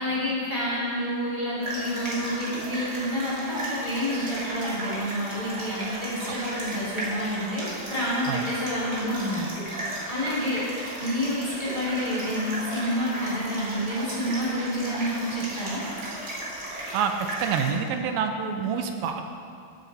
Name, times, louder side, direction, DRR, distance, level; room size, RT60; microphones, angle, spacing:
voice 1, 0.0-9.7 10.1-15.8, equal, 10° left, -8 dB, 2.3 m, -29 dB
sound 1, 1.6-17.7, right 1 dB, 35° right, 2.0 m, -35 dB
voice 2, 17.4-19.2, right 7 dB, 80° right, 5 dB, 2.4 m, -27 dB
15.5 x 7.1 x 4.1 m, 2.4 s
omnidirectional pair, 4.5 m